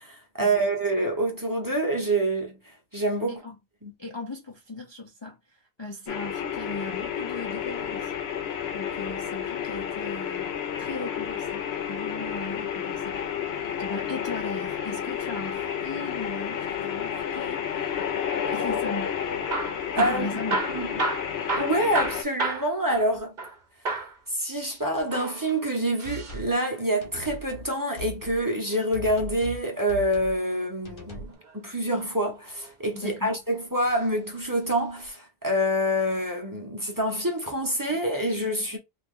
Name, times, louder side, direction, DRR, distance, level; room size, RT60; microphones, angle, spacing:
voice 1, 0.0-2.6 2.9-3.4 3.8-3.9 19.9-20.3 20.7-20.9 21.6-23.3 24.3-38.8, right 1 dB, 20° right, 0.8 m, -26 dB
voice 2, 4.0-8.1 8.7-10.5 10.8-18.1 18.5-19.2 19.9-20.6 32.9-33.4, left 3 dB, 30° left, 0.5 m, -38 dB
sound 1, 6.1-22.2, left 8 dB, 75° left, 0.9 m, -31 dB
Hammer / Drill, 19.3-23.6 23.8-24.2 25.0-26.4 28.2-29.4 31.1-31.6 32.3-33.1 33.8-34.0 34.3-34.4 35.1-35.2, right 3 dB, 50° right, 0.9 m, -32 dB
sound 2, 26.0-26.5 27.0-27.7 28.0-28.4 28.9-29.6 29.9-30.4 30.8-31.4, equal, 55° left, 1.2 m, -39 dB
2.9 x 2.4 x 3.6 m
omnidirectional pair, 1.1 m